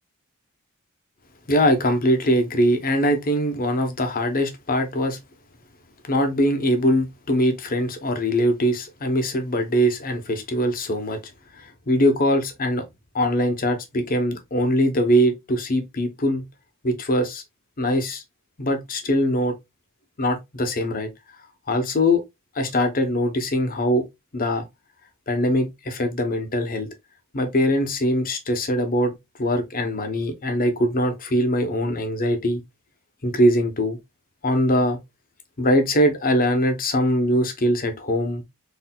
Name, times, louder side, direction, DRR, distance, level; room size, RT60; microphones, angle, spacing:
voice 1, 1.5-5.2 6.1-11.2 11.6-12.8 13.1-16.4 16.8-17.4 17.8-18.2 18.6-19.6 20.2-21.1 21.7-22.2 22.6-24.0 24.3-24.7 25.3-26.9 27.3-29.1 29.4-32.6 33.2-34.0 34.4-35.0 35.6-38.4, equal, 40° left, 0.8 m, -22 dB
4.3 x 3.3 x 2.2 m
head